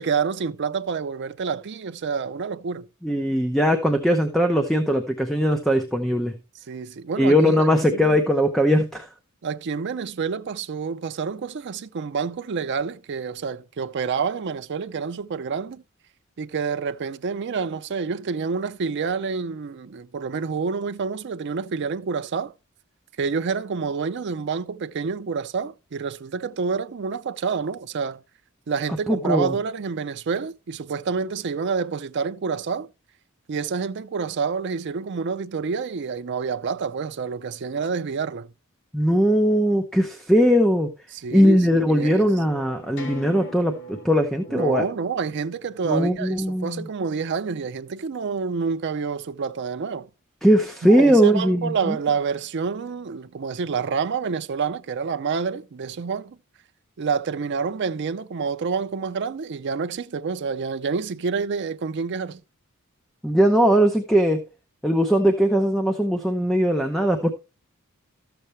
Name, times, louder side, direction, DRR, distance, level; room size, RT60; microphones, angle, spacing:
voice 1, 0.0-2.9 6.7-7.6 7.9-8.2 9.4-15.8 16.4-22.5 23.2-28.2 28.7-32.9 33.5-38.5 41.2-42.3 44.5-50.1 50.9-56.4 57.0-62.4, right 5 dB, 50° right, 0.5 m, -28 dB
voice 2, 3.0-6.3 7.2-9.1 29.1-29.5 38.9-40.9 41.3-44.9 45.9-46.9 50.4-52.0 63.2-64.4 64.8-67.3, equal, ahead, 0.7 m, -20 dB
sound 1, 41.5-46.6, right 1 dB, 55° left, 2.2 m, -43 dB
13.0 x 6.9 x 3.1 m
head